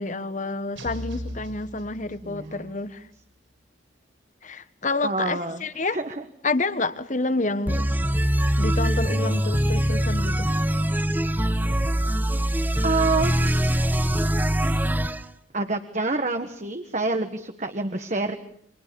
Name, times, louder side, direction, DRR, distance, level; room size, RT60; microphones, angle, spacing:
voice 1, 0.0-3.1 4.4-6.0 6.4-7.9 8.6-10.5, left 3 dB, 40° left, 13 dB, 1.4 m, -28 dB
sound 1, 0.8-2.7, left 1 dB, 80° right, 6.6 m, -37 dB
voice 2, 2.2-2.8 5.0-5.6 5.9-6.2 12.8-13.4 15.5-18.4, right 3 dB, 40° right, 6 dB, 1.5 m, -27 dB
sound 2, 7.7-15.2, equal, 10° right, 1.0 m, -23 dB
29.0 x 25.0 x 7.1 m, 0.64 s
head